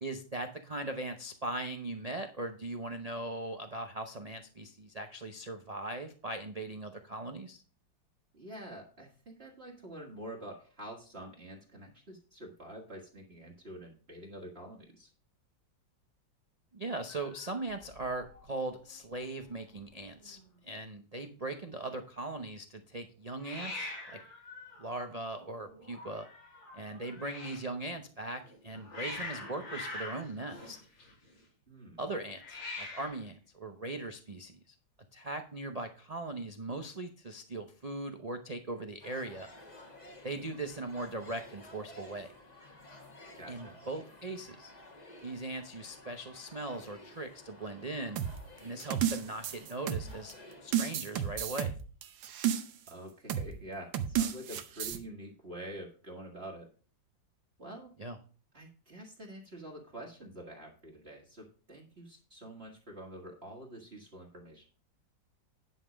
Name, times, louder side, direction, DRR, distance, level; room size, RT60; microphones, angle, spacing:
voice 1, 0.0-7.6 16.7-24.2 24.8-26.3 26.7-30.8 32.0-34.7 35.1-39.5 40.2-42.3 43.5-44.7 45.2-48.2 48.6-50.3 50.6-51.7 58.0-58.2, right 2 dB, 60° right, 5 dB, 0.4 m, -39 dB
voice 2, 8.3-15.1 31.7-32.0 43.4-43.7 52.9-56.7 57.6-57.9 58.5-64.6, right 1 dB, 35° right, -1 dB, 1.7 m, -47 dB
Hiss, 17.1-18.4 18.7-19.2 19.4-19.5 19.7-20.4 23.4-27.7 28.4-31.4 32.3-33.3, left 2 dB, 80° left, 3.8 m, -44 dB
sound 1, 39.0-50.9, left 1 dB, 25° left, 1.4 m, -53 dB
sound 2, 48.2-50.3 50.7-52.9 53.3-53.5 53.9-55.0, right 10 dB, 80° right, 1.6 m, -32 dB
10.5 x 5.7 x 5.0 m, 0.39 s
omnidirectional pair, 2.0 m